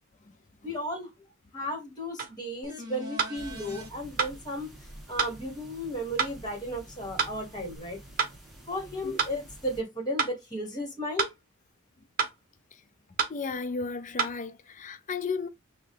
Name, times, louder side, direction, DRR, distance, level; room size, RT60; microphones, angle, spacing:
voice 1, 0.6-1.1 1.5-4.7 5.1-8.0 8.7-11.3, equal, 20° left, 1.4 m, -34 dB
sound 1, 2.2-2.4 3.2-3.4 4.2-4.4 5.2-5.4 6.2-6.4 7.2-7.4 8.2-8.4 9.2-9.4 10.2-10.4 11.2-11.4 12.2-12.4 13.2-13.4 14.2-14.4, right 5 dB, 40° right, 1.0 m, -28 dB
sound 2, 2.6-3.9 7.7-7.8, left 1 dB, 20° right, 1.6 m, -41 dB
sound 3, 3.3-9.8, right 1 dB, ahead, 1.5 m, -49 dB
voice 2, 13.3-15.5, left 4 dB, 35° left, 0.4 m, -34 dB
6.1 x 2.3 x 3.7 m
head